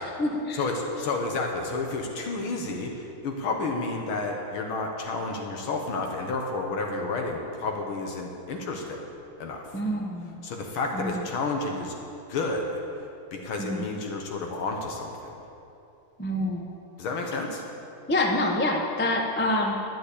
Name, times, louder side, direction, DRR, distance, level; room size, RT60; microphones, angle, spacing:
voice 1, 0.0-0.6 9.7-10.4 10.9-11.3 13.6-13.8 16.2-16.7 18.1-19.7, left 1 dB, 15° left, 1 dB, 0.3 m, -27 dB
voice 2, 0.5-9.0 9.4-9.7 10.4-11.9 12.3-12.8 13.3-15.3 17.0-17.6, left 3 dB, 75° left, 2 dB, 1.9 m, -31 dB
12.5 x 8.5 x 8.4 m, 2.8 s
omnidirectional pair, 2.3 m